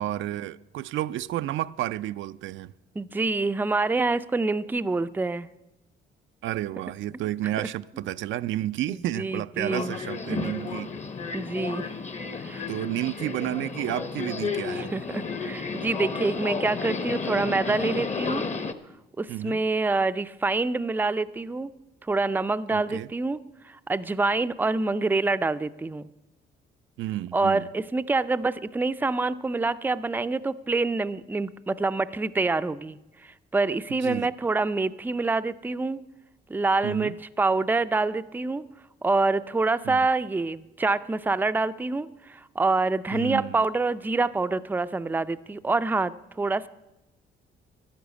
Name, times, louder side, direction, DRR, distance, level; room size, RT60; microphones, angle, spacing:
voice 1, 0.0-2.7 6.4-10.9 12.7-14.9 19.3-19.6 22.7-23.1 27.0-27.7 34.0-34.3 36.8-37.2 39.8-40.0 43.1-43.6, right 14 dB, 75° right, 0.4 m, -31 dB
voice 2, 3.0-5.5 8.9-9.9 10.3-10.4 11.3-12.0 12.3-12.7 14.8-18.4 19.2-21.7 22.1-23.4 23.6-26.1 27.3-36.0 36.5-37.1 37.4-38.7 39.0-46.7, right 3 dB, 10° right, 0.4 m, -26 dB
Subway metro underground, 9.7-18.7, left 4 dB, 35° left, 0.9 m, -32 dB
11.5 x 10.5 x 8.1 m
cardioid pair, 90°, 20 cm